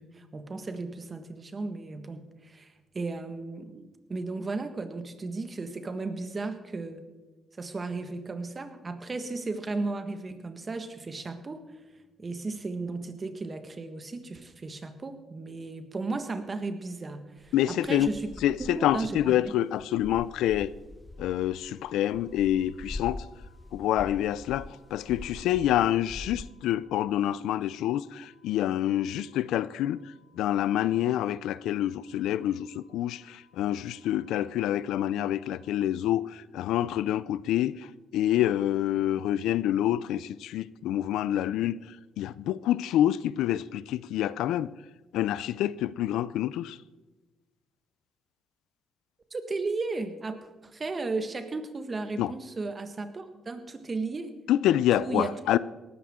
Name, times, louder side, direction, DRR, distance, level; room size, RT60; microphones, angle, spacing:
voice 1, 0.0-7.0 7.6-11.6 12.2-18.3 18.6-19.5 49.3-54.3 55.0-55.4, right 3 dB, 30° right, 1.5 m, -35 dB
sound 1, 17.4-26.5, left 2 dB, 15° left, 0.4 m, -44 dB
voice 2, 17.5-18.1 18.4-20.7 21.2-23.2 23.7-30.0 30.4-37.7 38.1-41.7 42.2-44.7 45.1-46.8 52.2-52.3 54.5-55.6, left 12 dB, 85° left, 0.4 m, -27 dB
sound 2, 21.1-35.7, left 5 dB, 85° right, 5.6 m, -66 dB
18.0 x 14.0 x 3.7 m
cardioid pair, 90°, 0 cm